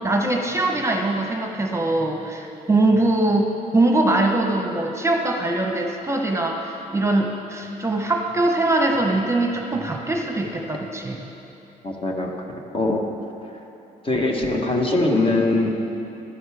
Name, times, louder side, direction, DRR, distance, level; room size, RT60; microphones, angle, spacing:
voice 1, 0.0-11.2 15.1-15.3, right 2 dB, 15° right, 2 dB, 1.0 m, -22 dB
voice 2, 11.8-12.4 12.7-13.0 14.0-15.7, left 2 dB, 35° left, 1 dB, 1.2 m, -21 dB
12.5 x 9.4 x 3.5 m, 2.9 s
supercardioid pair, 75°, 17 cm